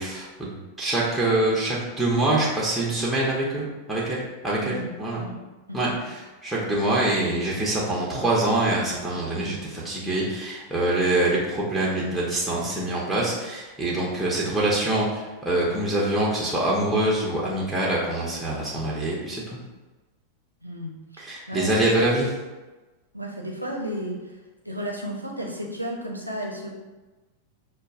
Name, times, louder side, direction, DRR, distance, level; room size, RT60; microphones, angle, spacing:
voice 1, 0.0-5.2 5.7-19.6 21.2-22.3, right 1 dB, ahead, -5 dB, 0.9 m, -25 dB
voice 2, 4.6-5.4 5.7-6.0 20.6-21.7 23.1-24.2 24.6-26.7, equal, 85° right, -1 dB, 0.7 m, -33 dB
6.4 x 2.3 x 2.5 m, 1.2 s
figure-of-eight pair, 90°, 0 cm